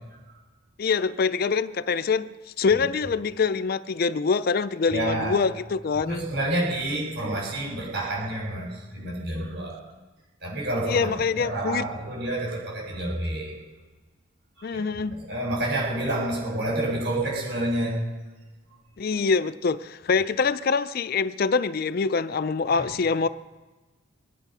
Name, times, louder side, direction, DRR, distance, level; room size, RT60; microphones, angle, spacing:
voice 1, 0.8-6.3 10.9-11.8 14.6-15.2 19.0-23.3, left 5 dB, 45° left, 0.4 m, -25 dB
voice 2, 4.9-5.4 6.0-9.8 10.4-11.1 11.4-13.6 14.6-14.8 15.2-18.0 22.8-22.9, right 1 dB, 50° right, 6.3 m, -28 dB
22.5 x 10.5 x 5.6 m
head